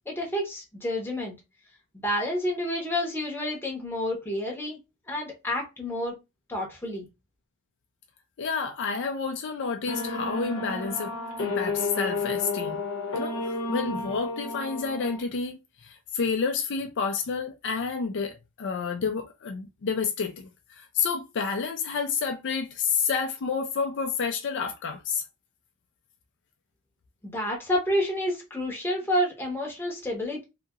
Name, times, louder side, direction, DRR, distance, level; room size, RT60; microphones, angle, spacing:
voice 1, 0.1-1.3 2.0-4.8 5.1-6.1 6.5-7.1 27.2-30.4, left 1 dB, 10° left, 0.8 m, -29 dB
voice 2, 8.4-12.8 13.1-20.5 20.8-25.2, left 5 dB, 55° left, 0.4 m, -30 dB
sound 1, 9.9-15.2, left 3 dB, 80° left, 0.8 m, -31 dB
2.8 x 2.7 x 2.4 m
head